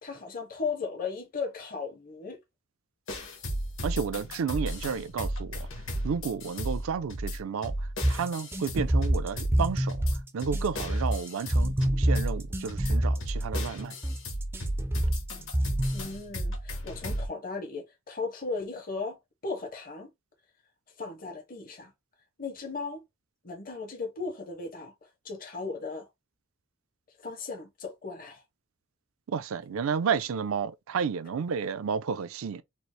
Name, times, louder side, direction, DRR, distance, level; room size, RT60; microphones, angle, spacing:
voice 1, 0.0-2.4 15.9-19.2 19.4-20.1 21.0-21.9 22.4-23.0 23.4-24.9 25.2-26.1 27.2-28.4, left 4 dB, 40° left, 0.7 m, -36 dB
sound 1, 3.1-17.3, equal, 70° left, 1.1 m, -34 dB
voice 2, 3.8-5.6 6.0-7.7 8.1-10.0 10.3-13.9 29.3-32.6, right 6 dB, 80° right, 0.4 m, -31 dB
sound 2, 8.0-16.0, right 1 dB, 10° right, 0.3 m, -27 dB
4.3 x 2.0 x 3.0 m
head